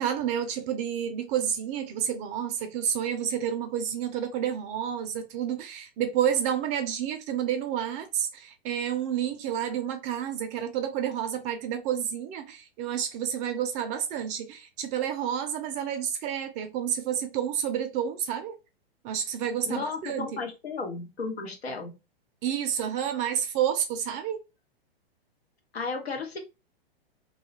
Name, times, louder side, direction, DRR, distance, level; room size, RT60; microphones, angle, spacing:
voice 1, 0.0-18.5 19.0-20.4 22.4-24.4, right 9 dB, 25° right, 0.4 m, -30 dB
voice 2, 19.7-22.0 25.7-26.4, left 4 dB, 90° left, 1.1 m, -34 dB
2.7 x 2.3 x 3.1 m
hypercardioid pair, 120°, 31 cm